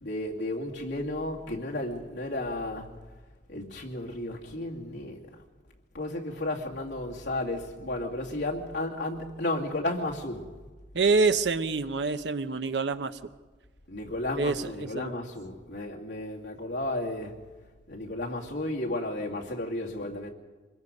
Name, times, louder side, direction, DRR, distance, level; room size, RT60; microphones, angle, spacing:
voice 1, 0.0-2.9 3.5-5.2 5.9-10.4 13.9-17.3 17.9-20.3, left 1 dB, 75° left, 2.6 m, -33 dB
voice 2, 10.9-13.2 14.4-15.1, right 4 dB, 75° right, 0.8 m, -26 dB
25.0 x 22.0 x 5.4 m
head